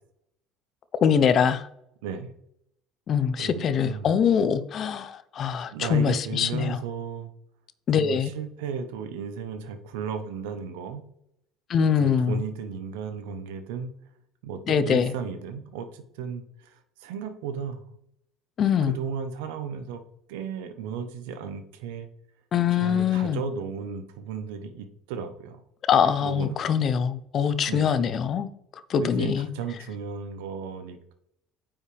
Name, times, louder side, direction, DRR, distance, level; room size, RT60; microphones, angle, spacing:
voice 1, 1.0-1.7 3.1-6.8 7.9-8.3 11.7-12.4 14.7-15.1 18.6-19.0 22.5-23.4 25.9-28.5 28.9-29.5, left 7 dB, 50° left, 13 dB, 0.8 m, -23 dB
voice 2, 2.0-2.3 3.4-4.1 5.7-7.3 7.9-11.0 12.0-13.9 14.4-17.9 18.9-20.0 20.3-22.1 22.7-25.6 26.2-26.6 27.7-27.9 29.0-31.1, right 6 dB, 85° right, 9 dB, 1.0 m, -34 dB
9.2 x 5.5 x 3.5 m, 0.75 s
supercardioid pair, 80°, 0 cm